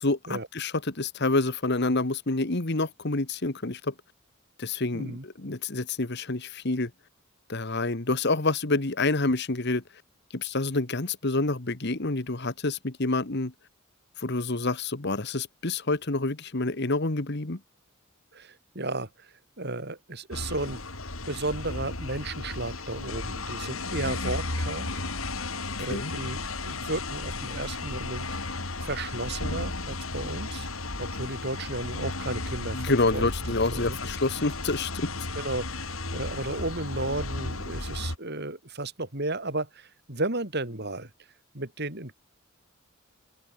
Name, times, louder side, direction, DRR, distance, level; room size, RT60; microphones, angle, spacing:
voice 1, 0.0-3.9 4.6-6.9 7.5-9.8 10.3-13.5 14.2-17.6 25.9-26.1 32.7-35.1, left 2 dB, 55° left, 1.6 m, -28 dB
voice 2, 4.9-5.2 18.3-20.8 21.3-25.0 25.8-28.3 28.8-30.7 31.0-32.8 33.1-33.3 33.7-34.0 35.3-41.1 41.5-42.1, right 2 dB, 50° right, 4.9 m, -34 dB
sound 1, 20.3-38.2, left 2 dB, 85° left, 5.8 m, -34 dB
open air
head